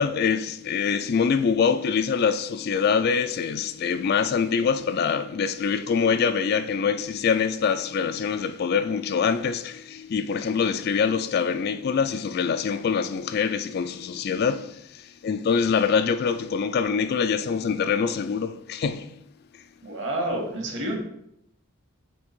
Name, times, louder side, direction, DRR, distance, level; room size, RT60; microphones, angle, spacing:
voice 1, 0.0-19.2, left 6 dB, 45° left, 0.3 m, -24 dB
voice 2, 19.8-21.0, right 1 dB, 55° right, 1.9 m, -29 dB
6.1 x 3.5 x 6.0 m
head